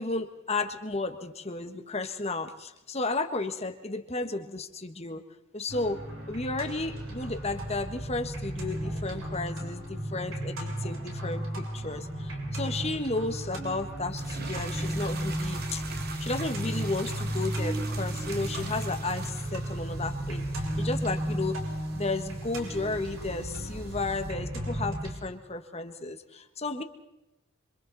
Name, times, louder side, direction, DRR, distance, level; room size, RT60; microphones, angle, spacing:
voice 1, 0.0-5.2 5.5-15.9 16.2-20.4 20.8-21.7 21.9-26.8, left 3 dB, 30° left, 7 dB, 1.5 m, -33 dB
sound 1, 5.7-25.1, right 1 dB, 70° right, 6.7 m, -34 dB
sound 2, 14.1-24.3, right 5 dB, 45° right, 2.3 m, -45 dB
27.0 x 25.5 x 4.1 m, 0.93 s
head